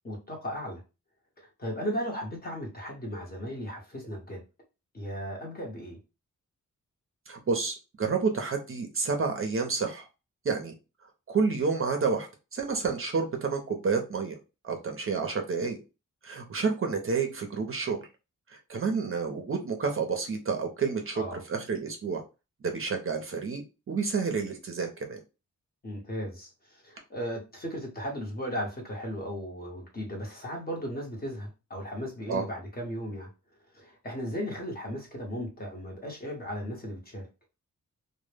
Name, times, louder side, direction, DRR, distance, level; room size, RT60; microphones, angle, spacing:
voice 1, 0.0-0.8 1.4-4.4 4.9-6.0 21.1-21.4 25.8-33.3 33.7-37.3, equal, 30° left, 0.8 m, -36 dB
voice 2, 7.3-10.0 10.4-10.7 11.3-14.3 14.6-15.8 16.2-18.0 18.7-22.2 22.6-25.2 32.3-32.4, right 5 dB, 45° right, 0.5 m, -29 dB
2.0 x 2.0 x 3.2 m
wide cardioid pair, 130°, 31 cm